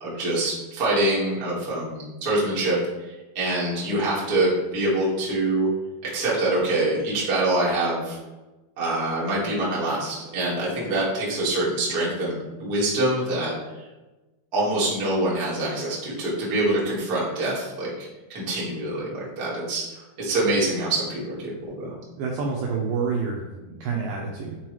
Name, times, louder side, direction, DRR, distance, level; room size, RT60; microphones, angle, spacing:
voice 1, 0.0-2.8 3.0-5.7 6.0-8.2 8.8-13.5 14.5-21.9, right 2 dB, 45° right, -6 dB, 1.2 m, -25 dB
voice 2, 22.2-24.6, right 5 dB, 85° right, -2 dB, 1.9 m, -28 dB
7.9 x 3.8 x 3.1 m, 1.1 s
omnidirectional pair, 4.7 m